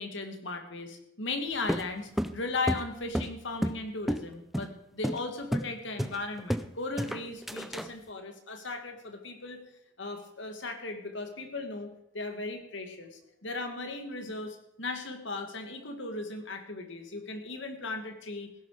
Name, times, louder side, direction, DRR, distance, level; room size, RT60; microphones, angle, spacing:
voice 1, 0.0-9.6 10.0-11.9 12.1-18.5, left 3 dB, 70° left, 5 dB, 2.2 m, -37 dB
sound 1, 1.7-3.8 4.1-4.3 4.5-4.7 5.0-5.2 5.5-5.7 6.0-6.7 7.0-7.9, equal, ahead, 0.4 m, -31 dB
16.5 x 11.0 x 4.9 m, 0.82 s
head